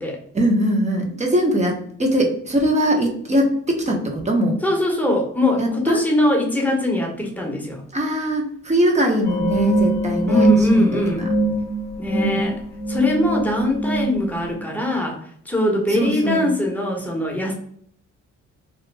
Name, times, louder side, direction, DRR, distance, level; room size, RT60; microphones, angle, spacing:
voice 1, 0.3-4.6 5.6-6.0 7.9-11.3 12.1-12.4 15.9-16.5, right 1 dB, 25° right, 1 dB, 0.9 m, -21 dB
voice 2, 4.6-7.8 10.3-11.3 12.0-12.6 12.9-17.5, left 1 dB, 5° left, -1 dB, 1.0 m, -22 dB
sound 1, 9.2-14.5, right 1 dB, 30° left, 0.8 m, -22 dB
3.1 x 2.2 x 3.3 m, 0.62 s
cardioid pair, 90°, 30 cm